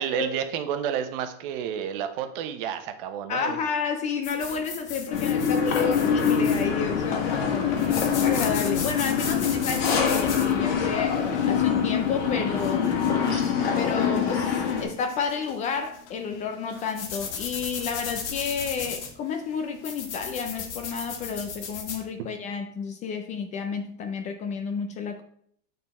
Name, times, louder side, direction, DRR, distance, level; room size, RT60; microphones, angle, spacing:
voice 1, 0.0-3.6 13.1-13.5 22.2-22.3, right 8 dB, 55° right, 1.0 m, -31 dB
voice 2, 3.3-12.9 13.8-25.2, left 6 dB, 20° left, 0.4 m, -31 dB
sound 1, 4.2-22.0, left 6 dB, 90° left, 1.7 m, -37 dB
sound 2, 5.1-14.8, left 7 dB, 65° left, 2.0 m, -24 dB
9.1 x 4.1 x 4.2 m
supercardioid pair, 160°, 33 cm